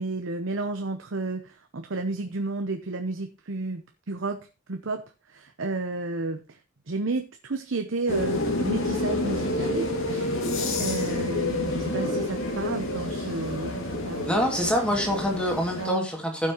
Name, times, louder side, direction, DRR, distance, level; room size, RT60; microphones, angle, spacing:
voice 1, 0.0-4.4 4.7-6.6 6.9-14.3 15.8-16.1, right 3 dB, 65° right, 6 dB, 0.9 m, -32 dB
sound 1, 8.1-15.9, left 2 dB, 70° left, 2.5 m, -29 dB
voice 2, 14.3-16.5, equal, 5° left, 1 dB, 2.5 m, -25 dB
16.0 x 6.1 x 3.1 m, 0.29 s
head